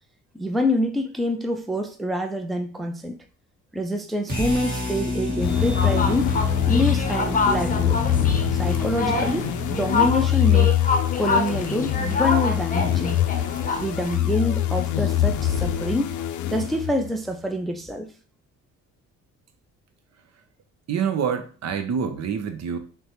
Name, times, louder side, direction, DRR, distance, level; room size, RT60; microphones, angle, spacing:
voice 1, 0.3-3.2 3.7-6.3 6.7-8.0 8.5-10.8 11.2-13.2 13.7-16.2 16.5-18.1, left 1 dB, ahead, 0.4 m, -26 dB
sound 1, 4.3-10.4, left 1 dB, 30° right, 1.7 m, -29 dB
sound 2, 5.4-17.2, left 11 dB, 75° left, 0.5 m, -24 dB
sound 3, 5.7-14.2, left 4 dB, 30° left, 0.7 m, -27 dB
voice 2, 20.9-22.8, right 7 dB, 60° right, 0.7 m, -26 dB
6.2 x 2.2 x 3.0 m
cardioid pair, 90°, 30 cm